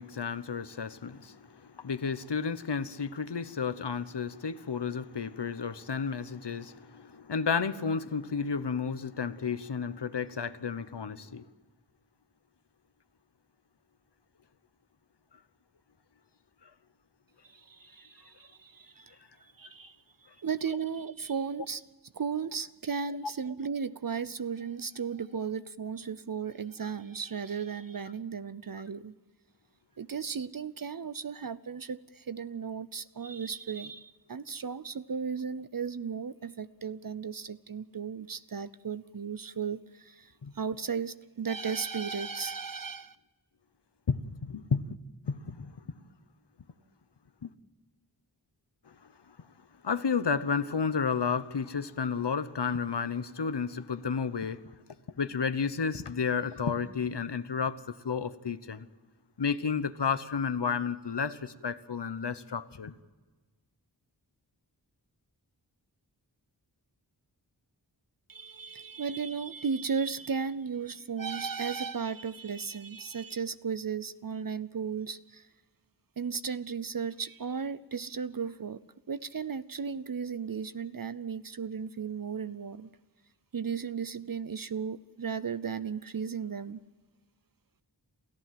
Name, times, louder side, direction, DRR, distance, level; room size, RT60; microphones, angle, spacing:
voice 1, 0.0-11.4 16.6-16.7 40.4-40.5 44.1-44.8 45.2-45.8 47.4-47.5 49.8-54.6 55.2-58.9 59.4-62.9, left 6 dB, 75° left, 1.0 m, -32 dB
voice 2, 17.4-20.0 20.4-21.8 22.1-29.1 30.0-43.2 68.3-75.5 76.2-78.8 79.1-82.9 83.5-86.8, right 6 dB, 55° right, 0.6 m, -35 dB
28.0 x 14.5 x 7.6 m
wide cardioid pair, 60°, 42 cm